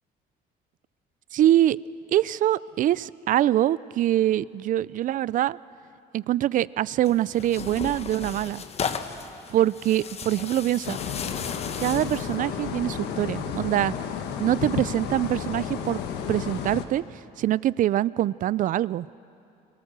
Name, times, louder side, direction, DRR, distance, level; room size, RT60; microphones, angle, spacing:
voice 1, 1.3-1.8 2.1-5.6 6.1-8.6 9.5-11.0 11.8-13.9 14.4-16.0 16.3-17.0 17.4-19.1, right 13 dB, 50° right, 21 dB, 0.4 m, -24 dB
Tearing, 7.0-12.4, left 6 dB, 40° left, 1.1 m, -35 dB
sound 1, 10.8-16.9, left 7 dB, 80° left, 1.4 m, -32 dB
23.5 x 18.5 x 6.8 m, 2.6 s
cardioid pair, 110°, 17 cm